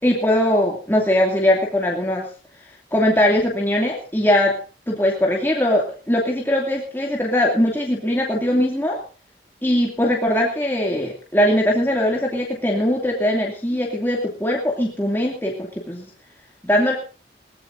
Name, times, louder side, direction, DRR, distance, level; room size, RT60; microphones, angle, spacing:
voice 1, 0.0-2.3 2.6-4.6 4.9-9.0 9.6-16.1 16.6-17.0, left 1 dB, 10° left, -2 dB, 2.6 m, -20 dB
21.5 x 18.5 x 2.7 m, 0.36 s
head